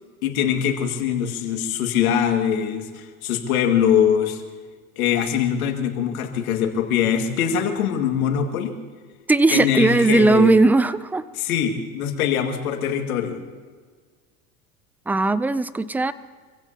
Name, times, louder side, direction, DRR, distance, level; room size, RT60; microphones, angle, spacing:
voice 1, 0.2-4.4 5.0-8.7 9.5-10.6 11.3-13.4, left 8 dB, 75° left, 3 dB, 2.2 m, -22 dB
voice 2, 9.3-11.3 15.1-16.1, right 3 dB, 5° right, 16 dB, 0.4 m, -18 dB
25.5 x 16.0 x 2.9 m, 1.5 s
hypercardioid pair, 85°, 43 cm